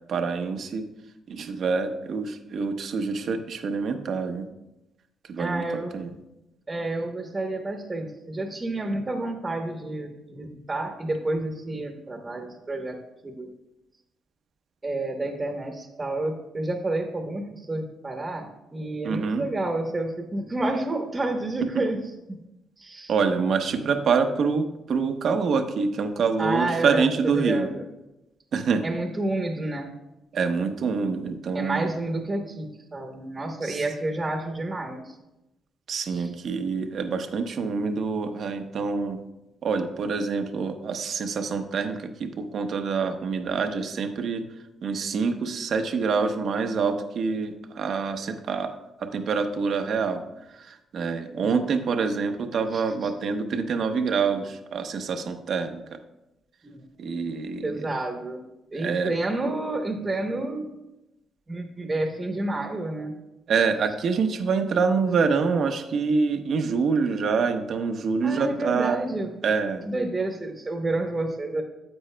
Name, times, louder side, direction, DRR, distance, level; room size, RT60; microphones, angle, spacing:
voice 1, 0.1-0.8 1.3-4.5 5.3-5.7 5.9-6.1 19.0-19.5 21.7-21.8 23.1-27.7 28.5-28.8 30.3-31.9 33.6-33.8 35.9-39.2 39.6-44.4 44.8-48.7 49.0-50.2 50.6-56.0 57.0-57.9 58.7-59.1 63.5-69.0 69.4-69.9, right 5 dB, 60° right, 7 dB, 0.8 m, -26 dB
voice 2, 5.4-6.1 6.7-13.0 13.2-13.5 14.8-22.0 22.8-23.1 26.4-27.8 28.8-29.9 31.5-35.1 36.1-36.3 51.3-51.5 52.7-52.8 56.6-56.8 57.6-58.4 58.7-60.7 61.5-63.1 68.2-69.3 69.8-71.6, right 2 dB, 25° right, 3 dB, 1.0 m, -29 dB
9.7 x 8.0 x 2.2 m, 0.95 s
cardioid pair, 90°, 0 cm